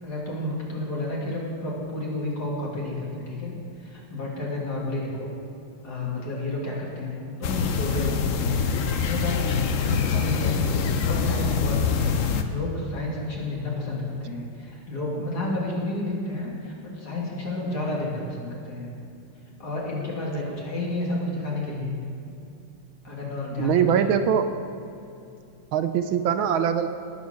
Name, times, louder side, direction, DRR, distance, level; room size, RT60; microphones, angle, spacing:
voice 1, 0.0-5.3 5.8-8.6 9.0-18.9 19.6-22.0 23.0-24.1, left 2 dB, 50° left, -4 dB, 2.9 m, -31 dB
sound 1, 7.4-12.4, left 6 dB, 75° left, 0.7 m, -24 dB
voice 2, 23.6-24.5 25.7-26.9, right 8 dB, 75° right, 9 dB, 1.4 m, -22 dB
18.0 x 7.1 x 6.4 m, 2.6 s
omnidirectional pair, 2.4 m